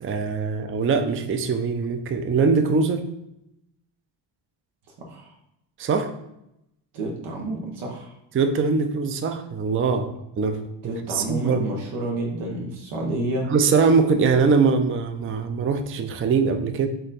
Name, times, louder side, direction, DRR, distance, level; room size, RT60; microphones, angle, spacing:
voice 1, 0.0-3.1 5.8-6.1 8.3-10.1 10.3-11.7 13.5-16.9, right 5 dB, 30° right, 8 dB, 0.4 m, -22 dB
voice 2, 6.9-8.1 10.8-13.5, right 1 dB, 90° right, -1 dB, 1.0 m, -29 dB
4.4 x 2.6 x 3.9 m, 0.83 s
cardioid pair, 90°, 49 cm